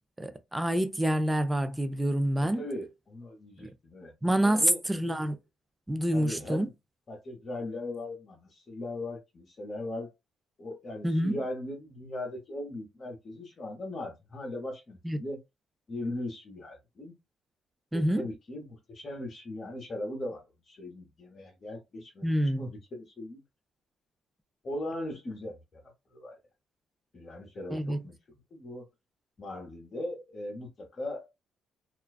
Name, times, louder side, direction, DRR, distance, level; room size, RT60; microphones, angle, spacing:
voice 1, 0.2-2.6 3.6-3.7 4.2-4.6 4.9-5.4 5.9-6.7 11.0-11.4 15.0-15.2 17.9-18.2 22.2-22.6 27.7-28.0, right 1 dB, 10° right, 0.4 m, -27 dB
voice 2, 2.4-4.8 5.2-5.3 6.1-6.7 7.1-10.1 10.6-15.4 15.9-17.1 17.9-23.4 24.6-26.4 27.1-28.9 29.4-31.3, left 1 dB, 40° left, 0.8 m, -39 dB
2.4 x 2.2 x 2.2 m
cardioid pair, 90°, 0 cm